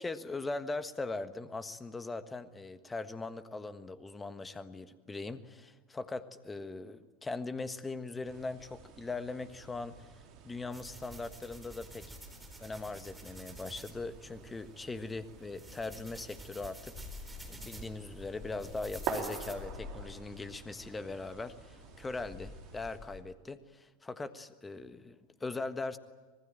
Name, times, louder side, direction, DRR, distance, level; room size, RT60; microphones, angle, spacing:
voice 1, 0.0-12.1 12.6-26.0, left 3 dB, 15° left, 11 dB, 1.5 m, -40 dB
sound 1, 8.2-23.0, right 7 dB, 45° right, 3.8 m, -48 dB
sound 2, 10.7-19.5, right 2 dB, 5° right, 4.2 m, -50 dB
sound 3, 16.9-23.2, left 4 dB, 40° left, 3.7 m, -49 dB
25.5 x 20.0 x 9.0 m, 1.3 s
figure-of-eight pair, 85°, 0 cm